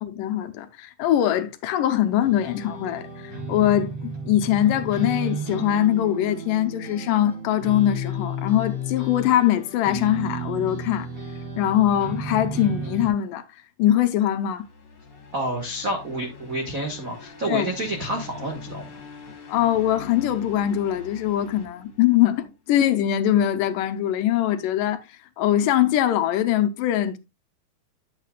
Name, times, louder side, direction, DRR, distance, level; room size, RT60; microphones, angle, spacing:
voice 1, 0.0-11.1 11.6-13.4 13.8-14.7 17.5-17.7 19.5-25.0 25.4-27.2, left 12 dB, 80° left, 2.3 m, -22 dB
sound 1, 2.2-13.1, right 1 dB, 25° right, 3.3 m, -33 dB
sound 2, 14.3-22.6, left 4 dB, 35° left, 2.4 m, -43 dB
voice 2, 15.3-18.9, right 1 dB, 75° right, 0.7 m, -29 dB
10.0 x 8.2 x 2.3 m
omnidirectional pair, 4.1 m